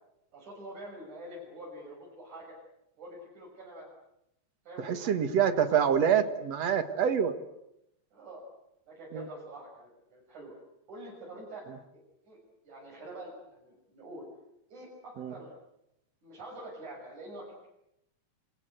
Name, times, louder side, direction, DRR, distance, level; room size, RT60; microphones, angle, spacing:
voice 1, 0.3-2.6 3.0-3.9 4.6-6.1 8.1-8.4 8.9-10.5 10.9-11.6 11.9-12.4 12.6-14.3 14.7-15.5 16.2-17.7, right 1 dB, 85° right, -5 dB, 8.2 m, -46 dB
voice 2, 4.8-7.4 9.1-9.2 15.2-15.3, right 8 dB, 60° right, 10 dB, 2.7 m, -26 dB
29.0 x 25.5 x 7.9 m, 0.83 s
omnidirectional pair, 3.3 m